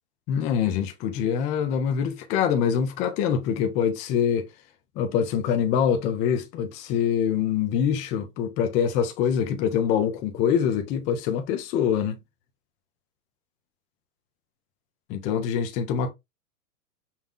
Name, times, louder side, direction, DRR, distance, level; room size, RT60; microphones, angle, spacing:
voice 1, 0.3-4.5 5.0-12.2 15.1-16.1, left 8 dB, 15° left, 0.4 m, -24 dB
5.5 x 2.2 x 3.6 m
hypercardioid pair, 125°, 47 cm